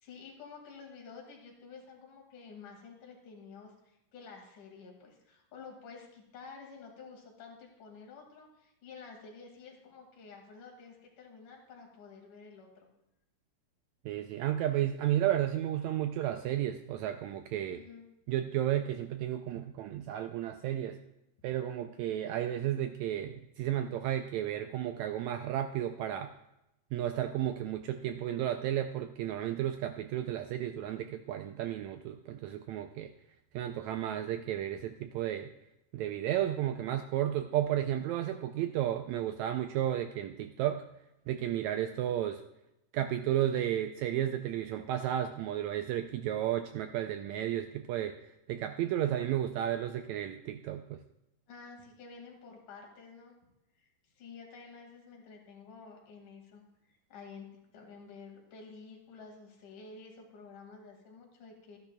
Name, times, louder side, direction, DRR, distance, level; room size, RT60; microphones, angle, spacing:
voice 1, 0.0-12.9 17.7-18.1 51.5-53.3 53.8-53.9 54.2-57.5 57.7-61.8, left 5 dB, 75° left, 1 dB, 3.3 m, -51 dB
voice 2, 14.0-17.8 18.3-21.0 21.4-26.3 26.9-33.1 33.5-35.5 35.9-40.8 41.3-42.4 42.9-48.1 48.5-51.0, right 11 dB, 85° right, 7 dB, 1.6 m, -33 dB
14.5 x 10.5 x 2.2 m, 0.88 s
omnidirectional pair, 3.7 m